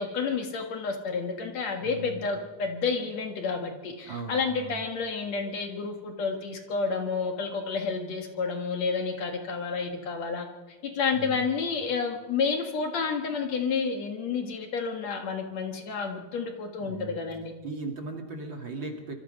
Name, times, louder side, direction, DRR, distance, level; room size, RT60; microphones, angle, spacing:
voice 1, 0.0-10.5 11.0-17.5, left 5 dB, 60° left, 4 dB, 2.7 m, -30 dB
voice 2, 1.8-2.4 4.1-4.8 11.1-11.4 16.8-17.3 17.6-19.2, right 4 dB, 40° right, 2 dB, 2.8 m, -38 dB
26.0 x 24.0 x 5.4 m, 1.4 s
omnidirectional pair, 3.7 m